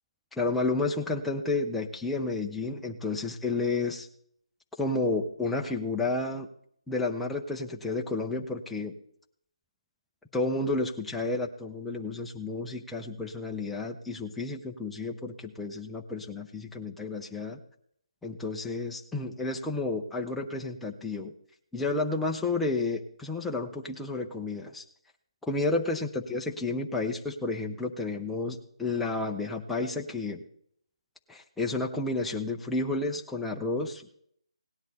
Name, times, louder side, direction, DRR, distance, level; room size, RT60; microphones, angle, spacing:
voice 1, 0.4-4.1 4.8-6.5 6.9-8.9 10.3-17.6 18.2-21.3 21.7-24.8 25.4-30.4 31.3-34.1, left 3 dB, 5° left, 0 dB, 0.6 m, -31 dB
17.5 x 10.5 x 4.1 m, 0.67 s
figure-of-eight pair, 155°, 3 cm